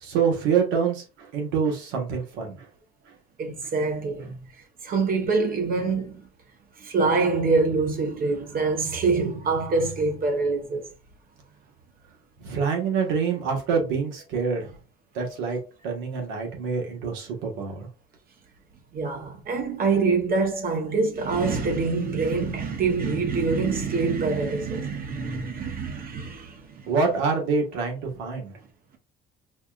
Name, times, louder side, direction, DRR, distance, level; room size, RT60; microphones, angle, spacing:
voice 1, 0.0-2.6 12.4-14.7 15.1-15.6 15.8-17.9 26.9-28.5, right 5 dB, 85° right, 1.3 m, -26 dB
voice 2, 3.4-4.4 4.8-6.2 6.8-10.8 18.9-26.9, right 4 dB, 50° right, 0.8 m, -25 dB
5.2 x 2.5 x 2.3 m
cardioid pair, 100°, 19 cm